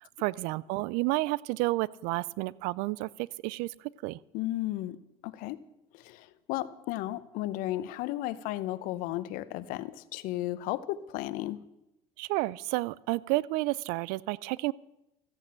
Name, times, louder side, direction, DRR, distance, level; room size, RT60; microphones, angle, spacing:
voice 1, 0.0-3.7 4.0-4.2 12.2-14.7, right 20 dB, 70° right, 22 dB, 0.4 m, -31 dB
voice 2, 4.3-5.0 5.2-5.6 6.0-11.6, left 15 dB, 70° left, 16 dB, 0.8 m, -34 dB
14.0 x 9.1 x 7.5 m, 0.91 s
supercardioid pair, 90°, 15 cm